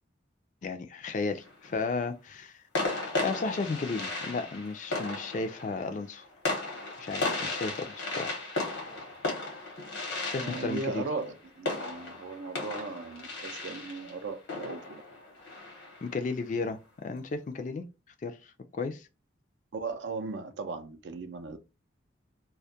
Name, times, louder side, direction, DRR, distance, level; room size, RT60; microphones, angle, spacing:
voice 1, 0.6-2.6 3.2-6.2 7.0-8.4 10.3-11.1 16.0-17.8 18.2-19.1, left 4 dB, 40° left, 0.3 m, -34 dB
sound 1, 1.2-1.8 2.7-16.2, left 2 dB, 80° left, 0.9 m, -35 dB
voice 2, 10.4-15.0 19.7-21.6, right 3 dB, 75° right, 0.4 m, -37 dB
2.2 x 2.1 x 2.7 m
head